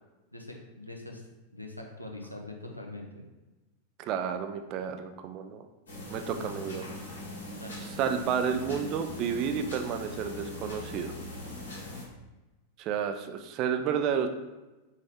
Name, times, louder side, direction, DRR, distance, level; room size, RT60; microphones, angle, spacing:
voice 1, 0.3-1.2 1.5-3.2 7.6-7.8, left 2 dB, 90° left, 1 dB, 0.7 m, -43 dB
voice 2, 4.0-5.7 6.1-6.8 8.0-11.1 12.8-14.3, right 7 dB, 40° right, 7 dB, 0.4 m, -31 dB
sound 1, 5.9-12.0, left 1 dB, 70° left, 1.4 m, -41 dB
4.5 x 3.0 x 3.5 m, 1.1 s
figure-of-eight pair, 90°, 0 cm